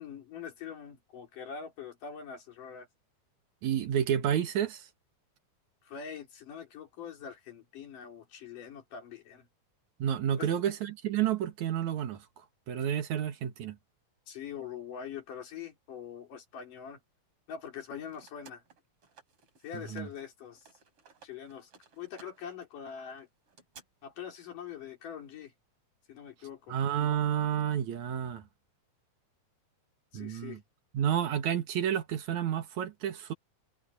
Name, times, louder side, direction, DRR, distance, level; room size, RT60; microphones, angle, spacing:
voice 1, 0.0-2.9 5.8-9.5 10.4-10.6 14.3-17.0 17.5-18.6 19.6-20.7 21.2-21.7 22.0-23.3 24.0-25.5 26.1-26.8 30.1-30.6, left 7 dB, 80° left, 5.1 m, -43 dB
voice 2, 3.6-4.9 10.0-12.3 12.7-13.8 19.7-20.1 26.7-28.4 30.1-30.6 30.9-33.3, right 9 dB, 70° right, 2.7 m, -30 dB
sound 1, 17.7-20.3 20.5-23.8, right 5 dB, 45° right, 3.8 m, -58 dB
omnidirectional pair, 3.7 m